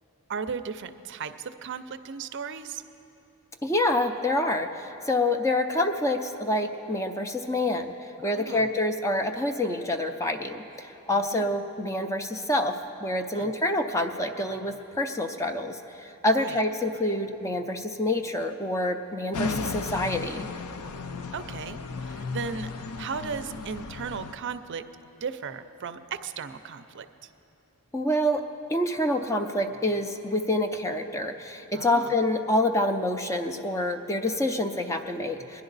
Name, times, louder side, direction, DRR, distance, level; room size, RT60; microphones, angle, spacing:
voice 1, 0.3-2.8 8.2-8.7 11.1-11.4 13.3-13.5 16.3-16.6 21.3-24.8 25.2-27.3 31.7-32.1, right 6 dB, 55° right, 10 dB, 0.5 m, -36 dB
voice 2, 3.6-7.9 8.2-20.5 27.9-28.4 28.7-35.6, left 1 dB, 15° left, 6 dB, 0.5 m, -27 dB
sound 1, 19.3-24.3, left 4 dB, 85° left, 0.6 m, -35 dB
21.5 x 10.5 x 4.0 m, 2.9 s
head